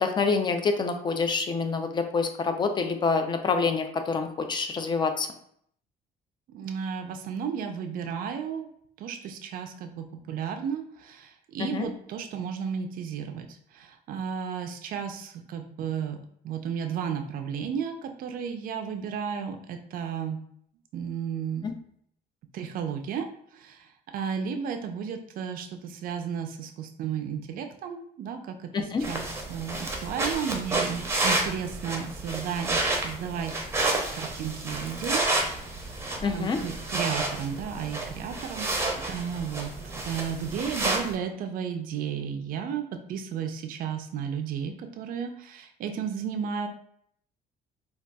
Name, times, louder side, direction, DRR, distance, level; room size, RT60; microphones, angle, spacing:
voice 1, 0.0-5.3 11.6-11.9 21.6-21.7 28.7-29.0 36.2-36.6, left 4 dB, 25° left, 6 dB, 0.4 m, -27 dB
voice 2, 6.5-8.7 9.0-16.2 16.4-20.4 20.9-21.7 22.5-23.3 23.5-29.2 29.5-33.7 34.1-35.2 35.6-36.0 36.3-38.7 39.1-46.7, right 7 dB, 55° right, 5 dB, 0.4 m, -33 dB
sound 1, 29.0-41.1, right 2 dB, 15° right, 0.6 m, -30 dB
3.9 x 2.3 x 2.2 m, 0.67 s
cardioid pair, 110°, 17 cm